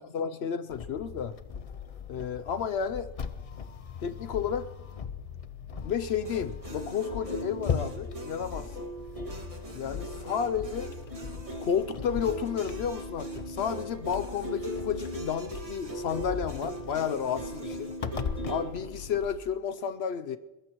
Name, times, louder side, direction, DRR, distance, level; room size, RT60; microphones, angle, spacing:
voice 1, 0.0-1.4 2.1-3.1 4.0-4.7 5.8-8.9 9.7-10.9 11.6-17.9 18.5-20.4, left 7 dB, 65° left, 0.9 m, -32 dB
sound 1, 0.7-19.4, left 6 dB, 40° left, 0.5 m, -39 dB
sound 2, 6.2-18.7, right 1 dB, 30° right, 2.1 m, -40 dB
21.5 x 21.0 x 3.0 m
omnidirectional pair, 1.2 m